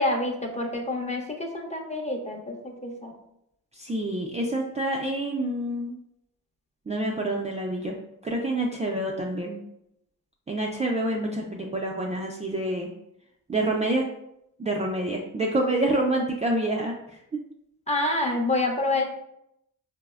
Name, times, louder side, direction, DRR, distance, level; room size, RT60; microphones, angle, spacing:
voice 1, 0.0-3.1 17.9-19.1, left 2 dB, 20° left, 1 dB, 0.7 m, -27 dB
voice 2, 3.7-6.0 6.9-8.0 8.2-9.6 10.5-12.9 13.5-14.0 14.6-17.2, right 1 dB, 20° right, -1 dB, 0.4 m, -27 dB
4.6 x 2.0 x 2.3 m, 0.79 s
supercardioid pair, 60°, 37 cm